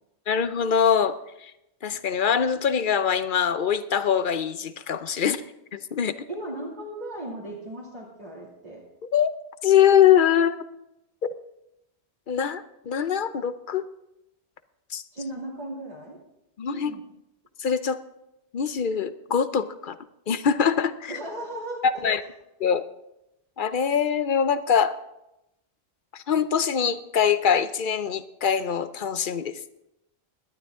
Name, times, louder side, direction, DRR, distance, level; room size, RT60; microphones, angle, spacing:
voice 1, 0.3-1.5 1.8-5.4 5.7-6.2 9.1-9.3 9.6-10.6 12.3-13.8 14.9-15.0 16.6-16.9 17.6-18.0 18.5-20.0 20.3-21.2 21.8-22.2 22.6-22.9 23.6-25.0 26.1-29.6, left 8 dB, 55° left, 13 dB, 0.7 m, -23 dB
voice 2, 6.3-8.8 15.1-16.2 16.7-17.0 21.1-22.3, right 1 dB, 40° right, -5 dB, 2.7 m, -36 dB
18.5 x 12.0 x 3.6 m, 0.87 s
omnidirectional pair, 1.1 m